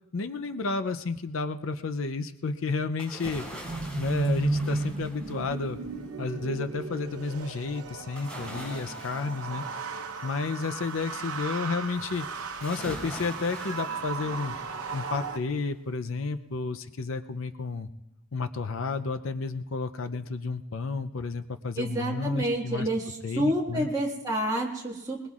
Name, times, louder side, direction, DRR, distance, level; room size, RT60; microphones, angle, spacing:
voice 1, 0.1-3.5 4.0-5.8 6.2-9.6 10.2-12.3 12.6-14.6 14.9-17.9 18.3-22.9 23.2-23.9, left 4 dB, 70° left, 9 dB, 0.5 m, -31 dB
sound 1, 3.0-5.8 8.1-10.8 12.6-14.9 15.3-15.4, right 1 dB, 5° left, 4.1 m, -43 dB
sound 2, 3.6-15.4, right 3 dB, 90° right, 0.9 m, -35 dB
voice 2, 21.8-25.3, right 1 dB, 15° right, -2 dB, 1.7 m, -29 dB
21.0 x 21.0 x 2.4 m, 0.97 s
head